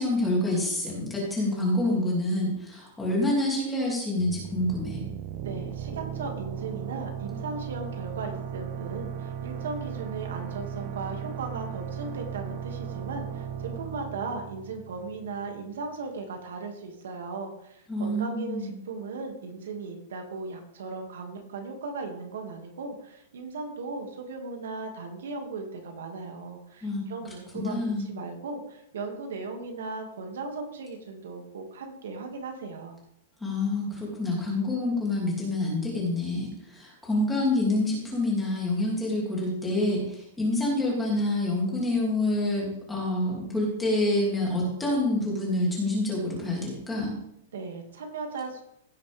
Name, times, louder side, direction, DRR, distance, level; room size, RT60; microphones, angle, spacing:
voice 1, 0.0-5.0 17.9-18.7 26.8-27.0 27.5-28.1 33.4-47.1, left 1 dB, 5° left, -4 dB, 2.6 m, -27 dB
sound 1, 4.2-15.6, right 8 dB, 30° right, 0.4 m, -36 dB
voice 2, 5.4-33.0 47.5-48.6, right 4 dB, 80° right, 3 dB, 2.1 m, -37 dB
16.0 x 6.5 x 3.5 m, 0.75 s
supercardioid pair, 180°, 0 cm